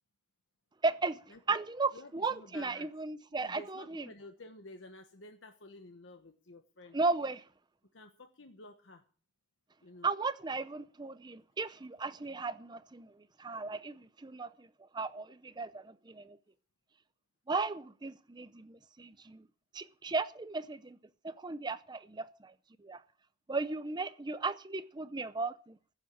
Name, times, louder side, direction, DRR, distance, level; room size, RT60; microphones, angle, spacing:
voice 1, 0.8-1.2 1.5-4.0 6.9-7.4 10.0-13.1 13.4-14.7 14.9-16.4 17.5-19.5 19.7-21.0 21.2-22.5 22.8-23.0 23.5-25.8, right 3 dB, 20° right, 0.6 m, -35 dB
voice 2, 1.9-2.9 3.4-7.0 7.9-9.0 9.8-10.1, left 2 dB, 80° left, 1.2 m, -52 dB
15.5 x 7.3 x 7.1 m
head